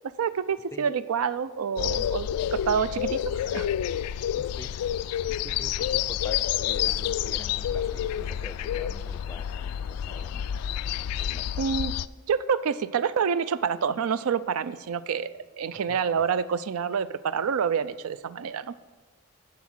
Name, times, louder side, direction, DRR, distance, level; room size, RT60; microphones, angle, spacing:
voice 1, 0.2-3.7 11.6-11.9 12.3-15.3 15.6-18.8, right 6 dB, 75° right, 15 dB, 0.4 m, -27 dB
sound 1, 1.8-12.1, left 10 dB, 90° left, 0.3 m, -29 dB
voice 2, 4.4-4.7 5.3-10.6 11.1-11.7 15.7-16.2, left 1 dB, 10° left, 10 dB, 0.4 m, -45 dB
9.5 x 7.3 x 6.1 m, 1.4 s
head